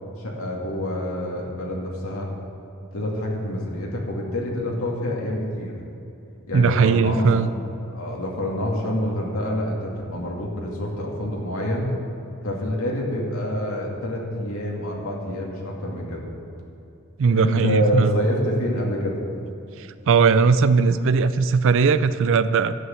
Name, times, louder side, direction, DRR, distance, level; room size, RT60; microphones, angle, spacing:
voice 1, 0.2-2.3 2.9-5.8 6.5-11.9 12.4-16.3 17.3-19.2, equal, 75° left, -2 dB, 2.2 m, -26 dB
voice 2, 6.5-7.5 17.2-18.2 19.8-22.7, right 5 dB, 65° right, 13 dB, 0.4 m, -19 dB
11.0 x 8.0 x 7.7 m, 2.9 s
head